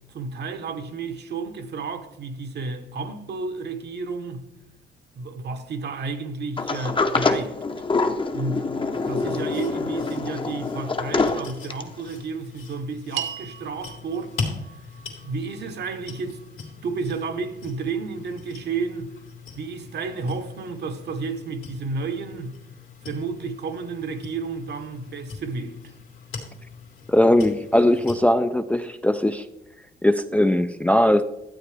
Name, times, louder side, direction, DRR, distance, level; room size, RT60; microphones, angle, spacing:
voice 1, 0.1-4.5 5.1-7.6 8.3-8.7 9.0-14.7 15.2-16.4 16.8-19.1 19.5-22.6 23.0-25.8, right 4 dB, 60° right, 1.1 m, -32 dB
Sliding door, 6.6-12.0, left 3 dB, 25° left, 0.8 m, -25 dB
sound 1, 8.9-28.2, left 4 dB, 80° left, 2.6 m, -41 dB
sound 2, 13.1-17.6, right 10 dB, 80° right, 1.1 m, -39 dB
voice 2, 27.1-29.5 30.0-31.2, left 1 dB, 5° left, 0.4 m, -19 dB
12.5 x 8.2 x 3.4 m
cardioid pair, 90°, 20 cm